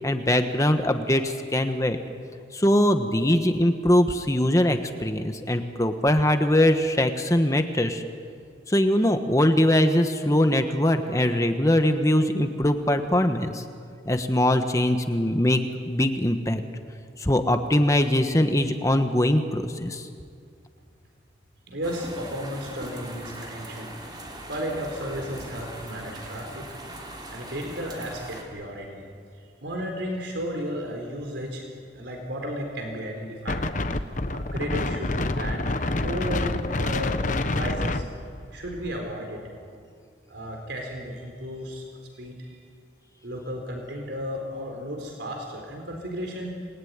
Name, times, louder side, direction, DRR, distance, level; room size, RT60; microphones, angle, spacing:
voice 1, 0.0-2.0 2.5-8.0 8.7-13.6 14.0-16.6 17.2-20.1, left 1 dB, 15° left, 7 dB, 1.3 m, -22 dB
voice 2, 21.7-23.9 24.5-26.7 27.3-29.0 29.6-31.7 31.9-33.6 34.3-38.0 38.5-39.4 40.3-41.8 42.1-42.6 43.2-46.7, equal, 80° right, 2 dB, 4.0 m, -34 dB
sound 1, 21.8-28.4, right 1 dB, 25° right, 3.6 m, -40 dB
Wind, 33.5-39.0, left 2 dB, 45° left, 1.0 m, -27 dB
27.5 x 20.0 x 9.6 m, 2.2 s
head